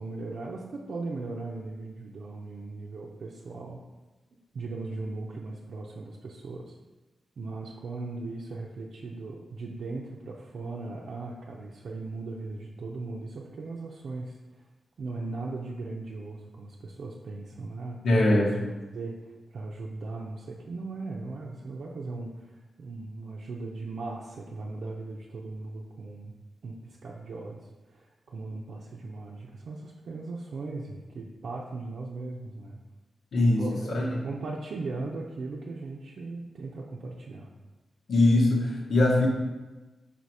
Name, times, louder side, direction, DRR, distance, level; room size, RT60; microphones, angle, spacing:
voice 1, 0.0-3.8 4.5-6.7 7.4-14.6 15.0-18.3 18.9-26.4 26.6-32.8 33.6-37.5, right 3 dB, 70° right, -3 dB, 0.6 m, -38 dB
voice 2, 18.0-18.6 33.3-33.6 33.9-34.1 38.1-39.3, left 2 dB, 70° left, -1 dB, 1.3 m, -21 dB
5.7 x 4.2 x 4.7 m, 1.2 s
wide cardioid pair, 125°, 0 cm